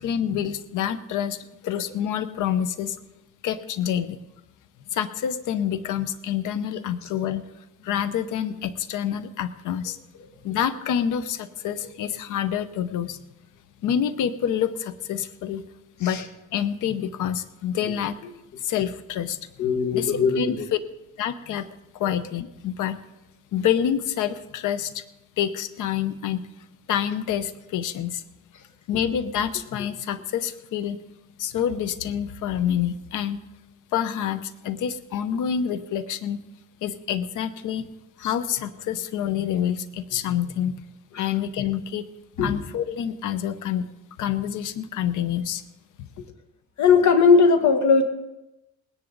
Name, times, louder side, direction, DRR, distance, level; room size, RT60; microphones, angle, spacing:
voice 1, 0.0-1.4 1.6-3.0 3.4-4.2 4.9-7.4 7.8-10.0 10.4-13.2 13.8-15.6 16.0-16.2 16.5-18.2 18.6-19.4 19.9-20.6 21.2-21.7 21.9-23.0 23.5-25.0 25.4-26.4 26.9-28.2 28.9-31.0 31.4-33.4 33.9-36.4 36.8-37.9 38.2-40.8 41.2-42.1 42.4-43.9 44.2-45.6 46.0-46.1, left 9 dB, 85° left, 13 dB, 0.9 m, -27 dB
voice 2, 19.6-20.7 38.2-38.3 41.1-41.3 42.4-42.5 46.2-46.3 46.8-48.0, left 5 dB, 70° left, 7 dB, 1.8 m, -19 dB
19.5 x 10.0 x 4.0 m, 0.96 s
cardioid pair, 90°, 30 cm